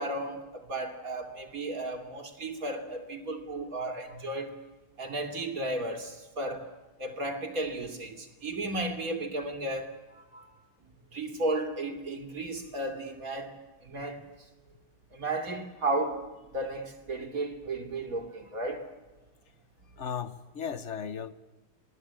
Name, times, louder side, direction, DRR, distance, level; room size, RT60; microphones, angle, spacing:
voice 1, 0.0-4.5 5.0-6.7 7.0-10.5 11.1-13.6 13.8-14.3 15.1-16.3 16.5-18.9, right 2 dB, 40° right, 3.1 m, -34 dB
voice 2, 20.0-21.3, left 7 dB, 50° left, 0.9 m, -36 dB
26.5 x 19.5 x 8.8 m
omnidirectional pair, 2.4 m